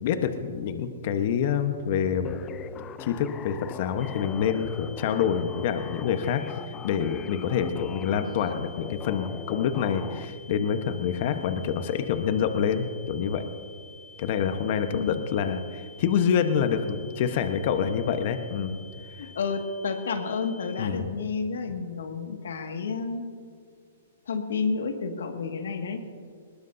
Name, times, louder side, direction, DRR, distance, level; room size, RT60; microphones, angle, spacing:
voice 1, 0.0-2.4 3.0-13.4 14.2-18.8 19.2-19.3 20.8-21.1, left 7 dB, 50° left, 8 dB, 1.1 m, -27 dB
sound 1, 2.2-10.2, left 9 dB, 25° left, 0.5 m, -41 dB
sound 2, 4.0-20.9, left 4 dB, 5° left, 2.7 m, -50 dB
voice 2, 19.2-23.2 24.3-26.2, left 4 dB, 75° left, 5 dB, 1.9 m, -30 dB
20.5 x 20.0 x 2.7 m, 2.1 s
hypercardioid pair, 130°, 0 cm